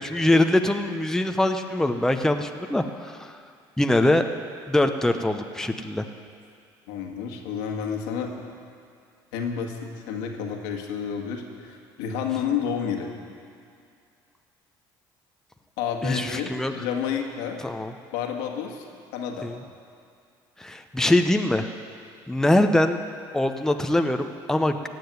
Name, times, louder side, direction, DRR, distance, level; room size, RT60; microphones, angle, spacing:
voice 1, 0.0-3.4 3.8-4.2 4.7-6.0 16.0-16.7 17.6-17.9 19.4-19.5 20.6-21.6 22.3-23.0 23.3-24.9, left 1 dB, 5° left, 6 dB, 0.8 m, -23 dB
voice 2, 6.9-8.3 9.3-13.1 15.8-17.6 18.1-18.9 19.1-19.5, left 7 dB, 85° left, 2 dB, 1.8 m, -30 dB
16.0 x 7.8 x 9.5 m, 2.4 s
supercardioid pair, 90°, 10 cm